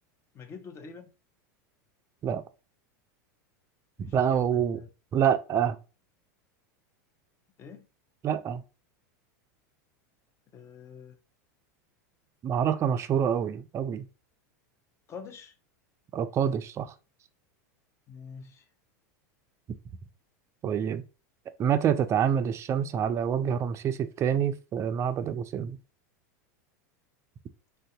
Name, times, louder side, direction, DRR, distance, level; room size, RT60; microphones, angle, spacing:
voice 1, 0.3-1.1 4.0-4.9 7.6-7.9 10.5-11.2 15.1-15.6 18.1-18.7, left 6 dB, 30° left, 0.6 m, -46 dB
voice 2, 4.0-4.8 5.1-5.8 8.2-8.6 12.4-14.1 16.1-16.9 20.6-21.0 21.6-25.8, right 8 dB, 30° right, 0.4 m, -27 dB
2.7 x 2.2 x 3.7 m
supercardioid pair, 115°, 9 cm